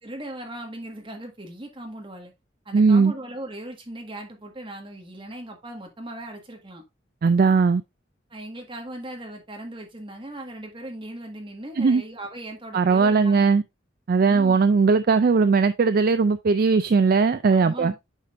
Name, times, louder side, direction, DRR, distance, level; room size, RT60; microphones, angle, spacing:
voice 1, 0.0-2.3 2.6-6.8 8.3-13.6 14.3-14.6 17.5-17.9, right 1 dB, 25° right, 1.6 m, -38 dB
voice 2, 2.7-3.1 7.2-7.8 11.8-12.0 12.7-13.6 14.1-17.9, right 4 dB, 45° right, 0.3 m, -19 dB
9.0 x 5.1 x 2.5 m
head